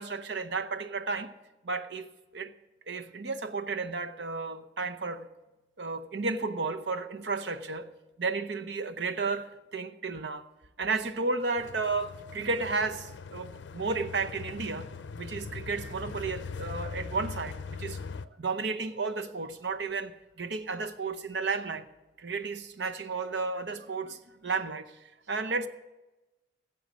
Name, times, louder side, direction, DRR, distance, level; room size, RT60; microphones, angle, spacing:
voice 1, 0.0-1.3 1.6-2.5 2.9-5.3 5.8-7.9 8.2-10.4 10.8-14.9 15.2-18.0 18.4-21.9 22.2-25.7, right 4 dB, 65° right, 0.8 m, -33 dB
sound 1, 11.6-18.3, left 5 dB, 75° left, 0.5 m, -41 dB
14.5 x 8.0 x 6.3 m
head